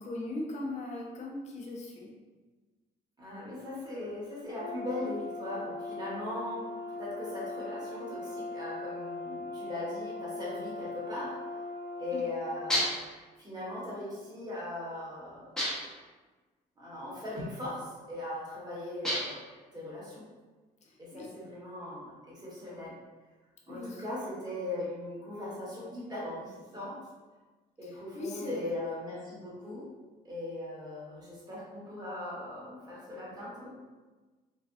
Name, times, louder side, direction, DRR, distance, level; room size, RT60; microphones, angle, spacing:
voice 1, 0.0-2.1 12.1-12.2 20.8-21.3 23.7-24.0 27.8-28.8, left 2 dB, 40° left, -1 dB, 0.7 m, -39 dB
voice 2, 3.2-6.6 7.0-11.4 12.0-12.9 13.4-15.4 16.8-19.4 19.7-20.2 21.0-22.9 23.7-26.9 27.8-29.9 30.2-33.7, left 2 dB, 25° right, -7 dB, 1.3 m, -39 dB
Brass instrument, 4.5-12.9, left 2 dB, 85° right, 1.3 m, -40 dB
sound 1, 12.7-13.2 15.6-16.0 19.0-19.5, equal, 5° left, 0.7 m, -31 dB
3.3 x 2.2 x 2.6 m, 1.3 s
cardioid pair, 110°, 17 cm